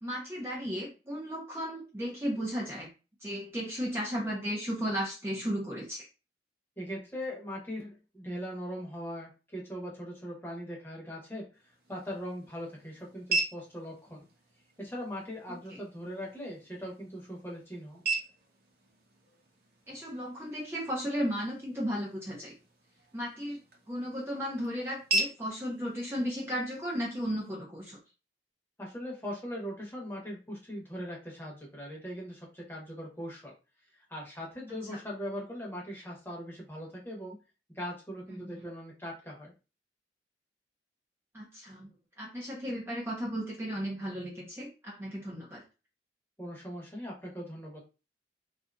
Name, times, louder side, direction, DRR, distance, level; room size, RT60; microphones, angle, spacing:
voice 1, 0.0-2.9 3.2-6.1 15.5-15.8 19.9-22.6 23.1-23.6 23.9-28.0 34.9-35.0 38.4-38.6 41.3-41.9 42.2-45.6, equal, 15° right, -3 dB, 0.5 m, -35 dB
voice 2, 6.8-14.3 14.8-18.0 28.8-33.5 33.9-37.3 37.7-39.5 46.4-47.8, equal, 15° left, -2 dB, 0.9 m, -40 dB
sound 1, 11.5-27.5, right 3 dB, 60° right, 0.8 m, -39 dB
2.7 x 2.4 x 2.3 m, 0.31 s
head